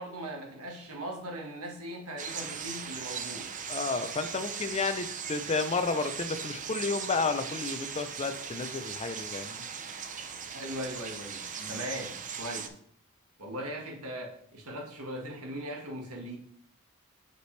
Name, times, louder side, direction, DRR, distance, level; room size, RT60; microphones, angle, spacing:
voice 1, 0.0-3.5 10.5-12.7 13.4-16.4, right 1 dB, 80° right, 0 dB, 1.6 m, -39 dB
sound 1, 2.2-12.7, right 6 dB, 35° right, 0.6 m, -39 dB
voice 2, 3.7-9.6 11.6-11.8, left 4 dB, 30° left, 9 dB, 0.5 m, -32 dB
6.0 x 5.6 x 3.3 m, 0.64 s
head